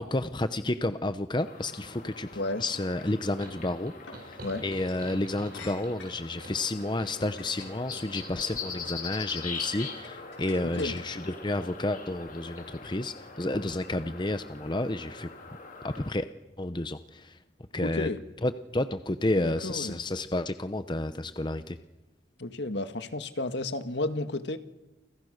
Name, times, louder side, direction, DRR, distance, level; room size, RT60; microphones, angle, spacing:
voice 1, 0.0-2.3 2.6-15.3 15.8-16.2 16.6-17.4 17.7-18.1 18.4-21.8, left 2 dB, 25° left, 11 dB, 0.8 m, -31 dB
sound 1, 1.4-16.1, left 4 dB, 45° left, 4.2 m, -43 dB
sound 2, 3.0-3.2 4.1-4.2 4.8-5.0 5.5-6.3 6.9-8.2 8.9-9.2 9.5-11.3, left 5 dB, 85° left, 7.0 m, -48 dB
sound 3, 3.4-8.6, right 1 dB, 50° right, 6.2 m, -47 dB
voice 2, 10.6-11.0 17.8-18.2 19.4-20.0 22.4-24.6, left 2 dB, 65° left, 10 dB, 1.7 m, -32 dB
29.0 x 26.5 x 6.6 m, 1.0 s
head